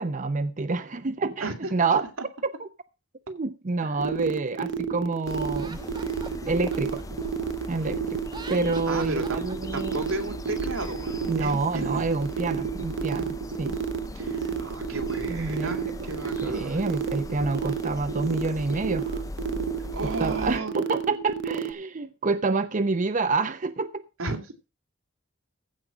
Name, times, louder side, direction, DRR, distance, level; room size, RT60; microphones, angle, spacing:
voice 1, 0.0-2.1 2.4-2.7 3.3-5.8 6.5-7.0 7.7-8.2 8.5-10.0 11.3-13.8 15.3-15.7 16.4-19.2 20.2-24.0, right 3 dB, 40° right, 0.6 m, -28 dB
sound 1, 4.0-21.7, right 7 dB, 60° right, 0.9 m, -31 dB
sound 2, 5.3-20.6, left 2 dB, 15° left, 0.4 m, -39 dB
Laughter, 5.5-7.8 8.2-10.1, right 4 dB, 20° right, 1.0 m, -44 dB
voice 2, 8.9-9.4 9.7-12.0 14.1-16.9 19.8-20.7 24.2-24.7, right 2 dB, 90° right, 2.6 m, -34 dB
15.0 x 5.2 x 5.8 m
head